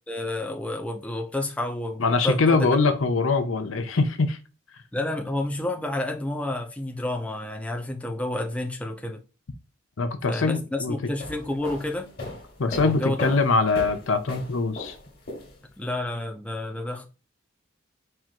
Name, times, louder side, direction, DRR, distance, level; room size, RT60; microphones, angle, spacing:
voice 1, 0.1-2.8 4.9-9.2 10.3-12.1 12.8-13.3 15.8-17.1, left 1 dB, 5° left, 0.5 m, -30 dB
voice 2, 2.0-4.4 10.0-11.0 12.6-14.9, left 3 dB, 75° left, 0.7 m, -23 dB
sound 1, 11.0-15.9, left 1 dB, 50° left, 1.4 m, -38 dB
4.4 x 2.5 x 4.4 m
head